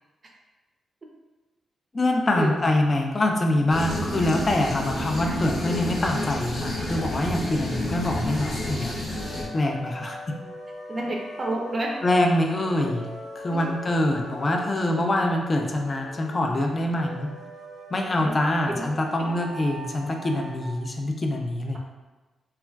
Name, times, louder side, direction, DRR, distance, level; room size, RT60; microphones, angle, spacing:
voice 1, 1.9-8.9 9.5-10.2 12.0-13.1 13.4-17.3 17.9-21.8, left 1 dB, 30° left, 2 dB, 0.3 m, -24 dB
sound 1, 3.7-9.4, left 1 dB, 60° left, 0.9 m, -30 dB
sound 2, 9.1-20.7, equal, 80° left, 1.2 m, -41 dB
voice 2, 10.9-11.9 13.5-13.6 14.7-14.9 18.2-18.3 18.7-18.9 19.2-19.3, right 1 dB, 40° right, -1 dB, 0.4 m, -30 dB
2.3 x 2.2 x 3.3 m, 1.1 s
cardioid pair, 95°, 0 cm